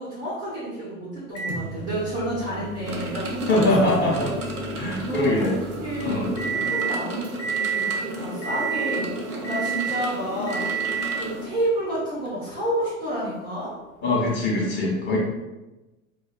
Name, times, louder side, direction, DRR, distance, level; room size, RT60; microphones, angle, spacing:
voice 1, 0.0-3.9 5.0-13.7, right 1 dB, 10° right, -8 dB, 0.3 m, -30 dB
Microwave oven, 1.4-7.0 7.4-8.0 8.4-9.0 9.4-10.1 10.5-11.3 12.3-12.4 14.4-14.5, right 6 dB, 60° left, 0.8 m, -31 dB
sound 1, 2.8-11.5, right 1 dB, 85° right, 0.6 m, -33 dB
voice 2, 3.5-4.3 4.7-5.5 6.0-6.2 14.0-15.2, left 2 dB, 25° left, -4 dB, 0.8 m, -22 dB
2.3 x 2.2 x 2.4 m, 1.1 s
figure-of-eight pair, 90°, 43 cm